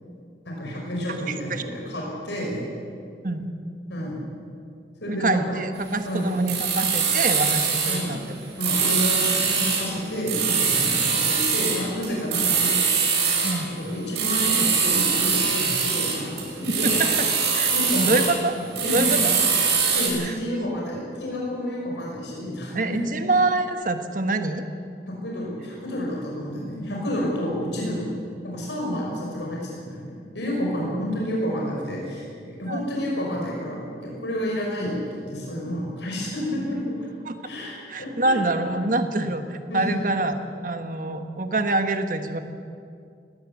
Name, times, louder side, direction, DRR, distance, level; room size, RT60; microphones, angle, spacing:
voice 1, 0.4-2.6 3.9-4.2 5.0-5.4 6.1-6.4 7.8-8.1 8.6-13.0 13.6-17.3 17.7-19.3 19.9-23.1 25.1-28.1 28.4-37.0 37.4-38.4 39.7-40.2, equal, 85° left, -3 dB, 5.7 m, -30 dB
voice 2, 5.1-8.2 11.1-11.2 13.4-13.8 16.8-17.1 17.5-18.5 18.9-19.3 20.2-20.4 22.7-24.6 32.7-32.8 37.2-37.4 37.9-40.4 40.6-42.4, right 2 dB, 50° right, 7 dB, 1.5 m, -25 dB
sound 1, 6.5-8.1 8.6-9.9 10.3-13.6 14.2-18.4 18.8-20.1, right 6 dB, 75° right, 6.0 m, -23 dB
19.0 x 18.0 x 8.3 m, 2.3 s
head